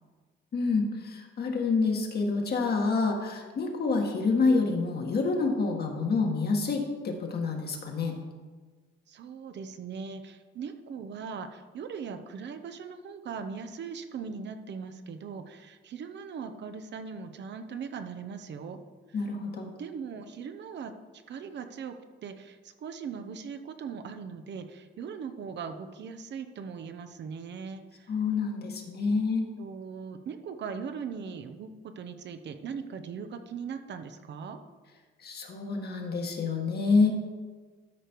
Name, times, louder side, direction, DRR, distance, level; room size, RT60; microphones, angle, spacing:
voice 1, 0.5-8.2 19.1-19.7 28.1-29.5 35.2-37.1, left 4 dB, 55° left, 2 dB, 1.8 m, -27 dB
voice 2, 9.1-18.8 19.8-20.9 21.3-28.1 29.0-29.2 29.6-34.6, right 6 dB, 60° right, 8 dB, 0.9 m, -40 dB
12.5 x 5.1 x 4.6 m, 1.4 s
cardioid pair, 90°, 20 cm